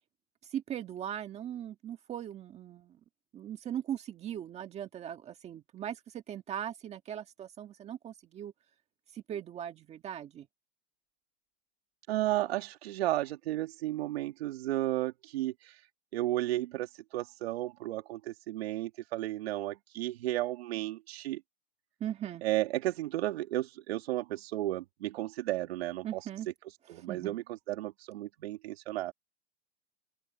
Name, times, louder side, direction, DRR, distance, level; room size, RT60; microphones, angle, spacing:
voice 1, 0.4-3.0 3.3-8.5 9.1-10.5 22.0-22.4 26.0-26.5 26.8-27.4, right 10 dB, 15° right, 1.7 m, -39 dB
voice 2, 12.1-15.9 16.1-21.4 22.4-26.3 26.9-29.1, right 15 dB, 55° right, 2.0 m, -33 dB
open air
hypercardioid pair, 155°, 37 cm